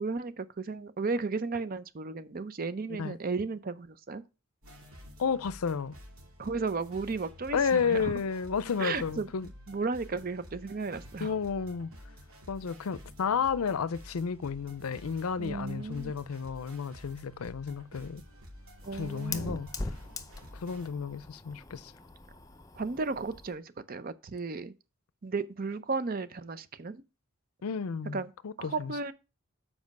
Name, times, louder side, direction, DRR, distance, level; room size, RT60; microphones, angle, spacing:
voice 1, 0.0-4.2 6.4-8.1 8.8-9.3 9.7-11.3 15.4-16.1 18.8-19.6 22.8-24.7 25.2-27.0 28.1-28.3 28.6-29.1, right 4 dB, 40° right, 0.5 m, -34 dB
sound 1, 4.6-20.9, equal, 75° right, 2.7 m, -51 dB
voice 2, 5.2-6.0 7.5-9.5 11.2-11.9 12.5-18.2 18.9-19.9 20.5-21.9 27.6-29.0, left 6 dB, 80° left, 0.5 m, -32 dB
Fire, 17.3-23.6, left 3 dB, 15° left, 0.6 m, -42 dB
7.4 x 5.0 x 5.2 m
head